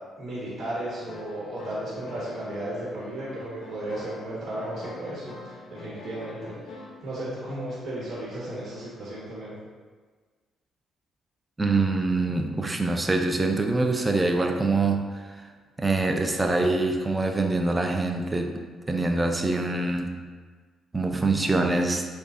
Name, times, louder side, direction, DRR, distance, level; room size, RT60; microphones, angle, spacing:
voice 1, 0.2-9.5, right 1 dB, 55° right, -8 dB, 1.3 m, -34 dB
sound 1, 0.8-7.1, left 3 dB, 60° left, 0.5 m, -45 dB
voice 2, 11.6-15.4 15.8-20.2 20.9-22.1, right 3 dB, 20° right, 4 dB, 0.4 m, -25 dB
6.7 x 2.3 x 2.5 m, 1.5 s
cardioid pair, 90°, 0 cm